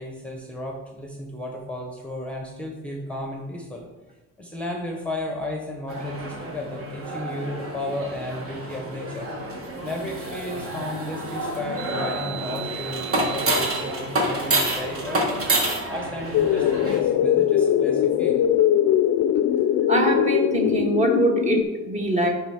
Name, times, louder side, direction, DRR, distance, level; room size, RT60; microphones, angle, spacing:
voice 1, 0.0-3.8 4.4-9.3 9.8-15.4 15.9-18.4, left 1 dB, 5° left, 0 dB, 0.9 m, -33 dB
sound 1, 5.9-17.0, right 1 dB, 50° right, 1.6 m, -28 dB
sound 2, 16.3-21.6, left 10 dB, 65° left, 0.5 m, -21 dB
voice 2, 19.9-22.3, right 2 dB, 25° right, 0 dB, 1.5 m, -23 dB
10.0 x 3.6 x 4.8 m, 1.1 s
cardioid pair, 110°, 30 cm